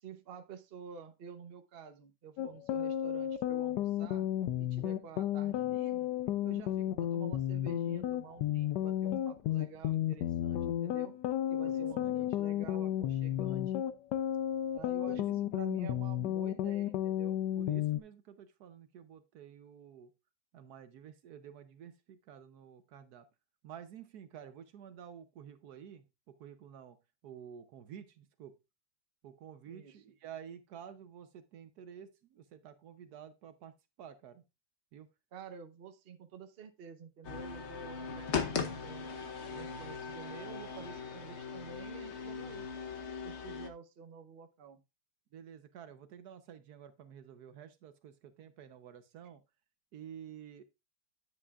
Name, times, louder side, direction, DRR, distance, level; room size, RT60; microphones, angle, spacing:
voice 1, 0.0-4.3 4.6-6.1 6.4-11.2 11.5-13.8 14.7-17.4 29.7-29.9 35.3-39.2 39.5-42.7 43.2-44.8, right 7 dB, 45° right, 8 dB, 0.9 m, -50 dB
sound 1, 2.4-18.0, left 11 dB, 80° left, 1.2 m, -33 dB
voice 2, 11.6-12.3 15.1-15.4 17.6-20.1 20.5-23.3 23.6-27.0 27.2-28.6 29.2-33.7 34.0-34.4 34.9-35.1 45.3-49.4 49.9-50.6, right 8 dB, 70° right, 11 dB, 1.2 m, -51 dB
sound 2, 37.2-43.7, left 5 dB, 50° left, 1.0 m, -39 dB
9.8 x 7.6 x 2.4 m, 0.24 s
omnidirectional pair, 1.8 m